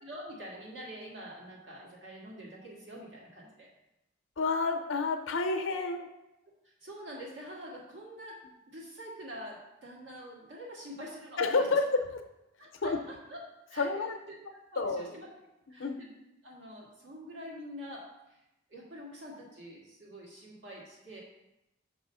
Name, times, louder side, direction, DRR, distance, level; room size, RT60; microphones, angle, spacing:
voice 1, 0.0-3.7 6.6-8.4 8.7-11.7 12.6-13.4 13.7-14.4 14.7-15.3 15.7-16.1 16.4-18.4 18.7-21.2, equal, 65° right, -3 dB, 1.7 m, -46 dB
voice 2, 4.4-6.1 11.4-12.2 12.8-13.0 13.8-14.2 14.8-15.2 15.8-16.0, left 3 dB, 80° left, 6 dB, 0.7 m, -29 dB
6.5 x 3.0 x 5.5 m, 0.92 s
head